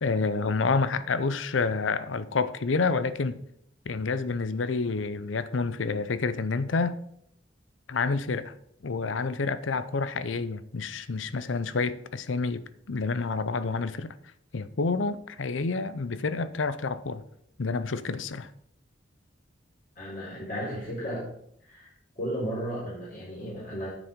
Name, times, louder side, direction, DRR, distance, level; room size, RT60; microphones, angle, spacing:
voice 1, 0.0-3.4 3.9-7.0 7.9-8.5 8.8-14.2 14.5-17.2 17.6-18.5, left 4 dB, 90° left, 0.6 m, -28 dB
voice 2, 20.0-21.2 21.6-21.9 22.2-23.9, equal, 45° left, 4.2 m, -34 dB
9.2 x 7.2 x 5.2 m
head